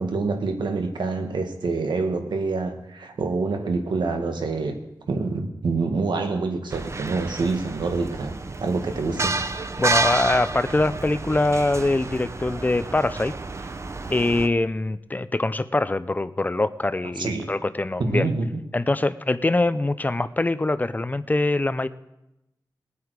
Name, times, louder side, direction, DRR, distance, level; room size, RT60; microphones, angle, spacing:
voice 1, 0.0-4.8 5.1-8.3 8.6-9.4 17.2-17.6 18.0-18.5, right 3 dB, 85° right, 5 dB, 1.5 m, -26 dB
sound 1, 6.7-14.5, right 3 dB, 40° right, 0.7 m, -30 dB
voice 2, 9.8-13.3 14.1-18.3 18.7-21.9, left 2 dB, 20° left, 14 dB, 0.4 m, -23 dB
20.5 x 8.4 x 4.7 m, 0.91 s
wide cardioid pair, 100°, 8 cm